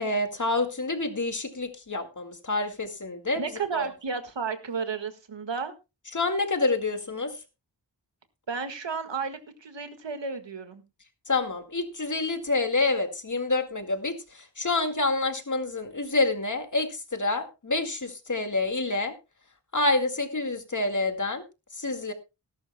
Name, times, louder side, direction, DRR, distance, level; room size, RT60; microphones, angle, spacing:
voice 1, 0.0-3.4 3.7-3.9 6.1-7.4 11.3-19.2 19.7-21.4 21.7-22.1, left 2 dB, 45° left, 6 dB, 2.0 m, -27 dB
voice 2, 3.4-5.7 8.5-10.8, right 5 dB, 85° right, 8 dB, 1.8 m, -33 dB
19.0 x 11.5 x 2.2 m, 0.27 s
wide cardioid pair, 80°, 43 cm